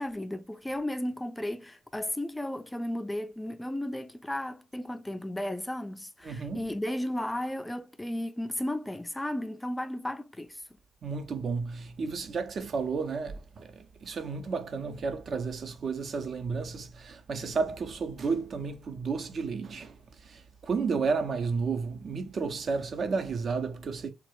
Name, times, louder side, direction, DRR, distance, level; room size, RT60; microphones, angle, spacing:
voice 1, 0.0-10.6, left 1 dB, 10° left, 0.3 m, -34 dB
voice 2, 6.2-6.7 11.0-20.0 20.2-24.1, right 4 dB, 50° right, 0.5 m, -32 dB
2.3 x 2.0 x 3.0 m
hypercardioid pair, 55°, 0 cm